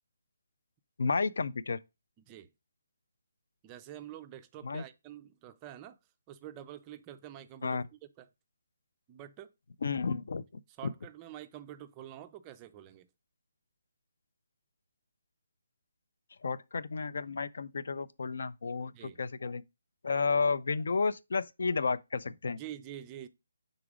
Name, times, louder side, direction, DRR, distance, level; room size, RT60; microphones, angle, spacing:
voice 1, 1.0-1.8 4.6-4.8 7.6-7.8 9.8-10.4 16.4-18.9 19.2-19.6 20.0-22.6, left 4 dB, 65° left, 0.4 m, -31 dB
voice 2, 2.2-2.5 3.6-6.0 6.3-7.8 8.2-8.3 9.1-9.5 10.8-13.1 18.9-19.2 22.6-23.3, right 11 dB, 15° right, 0.3 m, -47 dB
4.9 x 3.9 x 4.8 m
hypercardioid pair, 165°, 0 cm